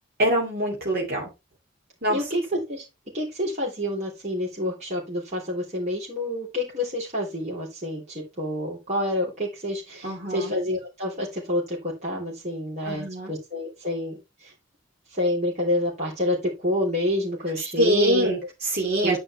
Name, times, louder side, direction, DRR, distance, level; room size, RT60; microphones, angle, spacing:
voice 1, 0.2-1.3 2.0-2.2 10.0-10.5 12.8-13.3 17.8-19.2, right 1 dB, 55° right, -1 dB, 2.6 m, -24 dB
voice 2, 2.1-2.8 3.1-14.5 15.1-18.4 19.0-19.2, left 1 dB, 35° right, -4 dB, 3.3 m, -28 dB
10.0 x 4.5 x 4.4 m, 0.25 s
head